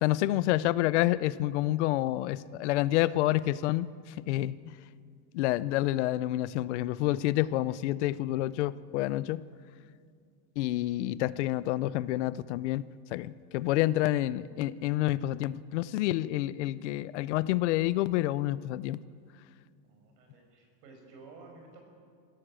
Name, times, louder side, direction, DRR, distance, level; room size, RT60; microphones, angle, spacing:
voice 1, 0.0-4.6 5.3-9.4 10.6-12.8 13.1-19.0, left 15 dB, 50° left, 18 dB, 0.5 m, -28 dB
voice 2, 19.8-21.8, right 3 dB, 75° right, 3 dB, 6.1 m, -53 dB
21.5 x 16.5 x 7.6 m, 2.2 s
supercardioid pair, 180°, 49 cm